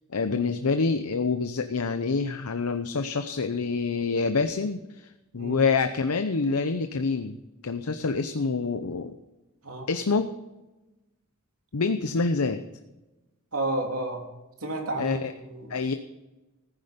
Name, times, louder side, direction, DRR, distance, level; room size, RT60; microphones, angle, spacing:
voice 1, 0.1-9.1 9.9-10.3 11.7-12.6 15.0-15.3 15.7-15.9, left 4 dB, 90° left, 8 dB, 0.7 m, -27 dB
voice 2, 13.5-14.2 14.6-15.2 15.5-15.7, right 2 dB, 75° right, 1 dB, 3.2 m, -31 dB
15.0 x 9.6 x 5.2 m, 1.0 s
head